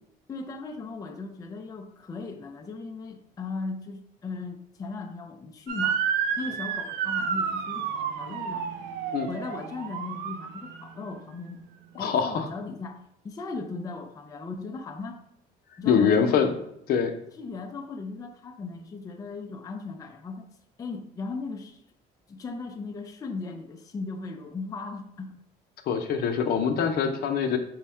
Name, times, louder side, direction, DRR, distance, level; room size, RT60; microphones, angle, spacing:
voice 1, 0.3-6.0 6.4-8.7 9.3-11.6 12.0-15.2 15.8-16.5 17.4-20.5 20.8-21.8 22.3-25.3, left 3 dB, 20° left, 5 dB, 0.4 m, -37 dB
Motor vehicle (road) / Siren, 5.7-10.9, right 7 dB, 90° right, 0.4 m, -30 dB
voice 2, 11.9-12.5 15.8-16.5 16.9-17.1 25.9-27.6, left 7 dB, 65° left, 6 dB, 0.6 m, -24 dB
4.5 x 2.1 x 4.3 m, 0.77 s
cardioid pair, 110°, 17 cm